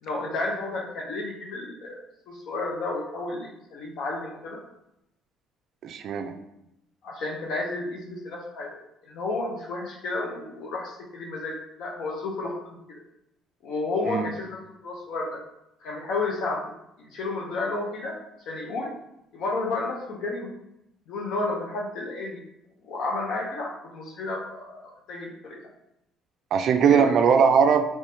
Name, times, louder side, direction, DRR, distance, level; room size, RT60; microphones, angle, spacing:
voice 1, 0.0-2.0 2.3-4.6 7.0-8.7 9.0-13.0 13.6-15.4 15.8-16.7 17.1-18.2 18.5-18.9 19.3-20.5 21.1-22.4 22.8-25.7 26.8-27.1, left 2 dB, 65° left, 0 dB, 0.6 m, -32 dB
voice 2, 5.8-6.3 14.1-14.2 26.5-27.8, right 6 dB, 55° right, 6 dB, 0.3 m, -20 dB
3.3 x 3.1 x 2.8 m, 0.84 s
cardioid pair, 120°, 0 cm